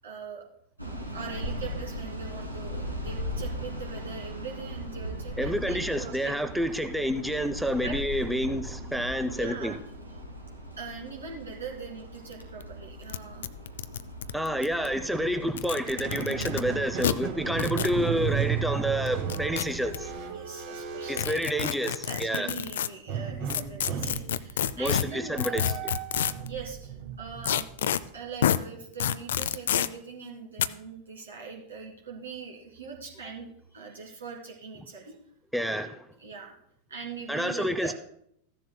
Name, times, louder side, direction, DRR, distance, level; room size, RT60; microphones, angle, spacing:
voice 1, 0.0-0.4 1.1-6.3 7.8-8.0 9.3-9.8 10.8-13.5 20.3-25.8 26.4-27.7 28.1-35.3 36.2-36.6 36.9-37.9, right 5 dB, 70° right, 2.0 m, -41 dB
sound 1, 0.8-20.2, equal, 90° right, 1.6 m, -39 dB
voice 2, 5.4-9.7 14.3-20.1 21.1-22.5 24.8-25.9 35.5-36.0 37.3-37.9, equal, ahead, 0.6 m, -29 dB
sound 2, 12.3-12.4 12.6-12.7 13.1-13.2 13.4-14.9 15.5-16.6 17.0-17.1 17.6-17.9 19.1-20.0 21.1-22.9 23.5-26.5 27.4-28.0 28.4-28.6 29.0-29.9 30.6-30.7, left 10 dB, 60° left, 0.4 m, -28 dB
Squeak, 15.8-22.1 23.1-28.2, right 7 dB, 45° right, 1.3 m, -35 dB
15.0 x 10.5 x 2.2 m
figure-of-eight pair, 90°, 0 cm